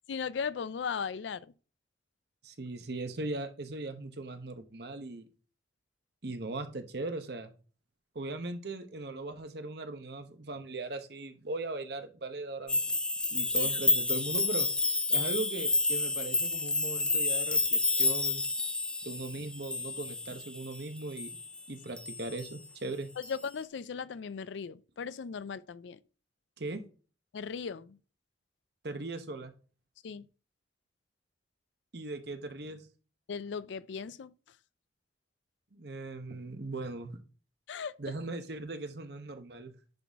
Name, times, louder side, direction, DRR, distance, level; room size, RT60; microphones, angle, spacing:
voice 1, 0.1-1.5 13.5-13.7 23.2-26.0 27.3-28.0 30.0-30.3 33.3-34.3 37.7-37.9, left 6 dB, 80° left, 0.4 m, -37 dB
voice 2, 2.4-5.3 6.2-7.5 8.1-12.9 13.3-14.7 15.1-18.4 19.0-21.3 21.7-23.1 26.6-26.8 28.8-29.5 31.9-32.9 35.7-37.2 38.0-39.7, right 2 dB, 60° right, 0.9 m, -39 dB
sound 1, 12.7-21.6 22.0-22.6 23.2-23.3, left 3 dB, 5° left, 0.3 m, -30 dB
10.5 x 4.0 x 3.5 m
head